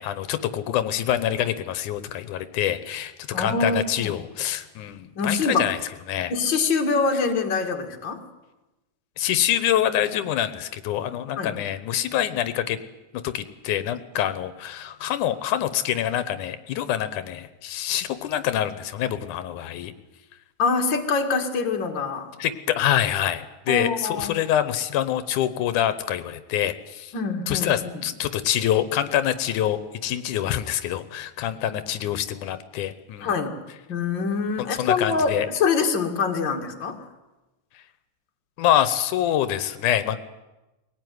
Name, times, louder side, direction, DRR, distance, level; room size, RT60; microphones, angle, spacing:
voice 1, 0.0-5.8 6.1-6.3 9.2-12.8 13.2-19.9 22.4-27.1 27.5-33.3 34.6-35.5 38.6-40.2, left 11 dB, 85° left, 12 dB, 2.5 m, -25 dB
voice 2, 3.3-4.1 5.2-5.7 6.3-8.2 11.4-11.6 20.6-22.3 23.7-24.4 27.1-28.0 33.2-33.6 33.9-37.0, left 4 dB, 40° left, 4 dB, 2.5 m, -25 dB
22.0 x 18.0 x 9.5 m, 1.1 s
omnidirectional pair, 3.4 m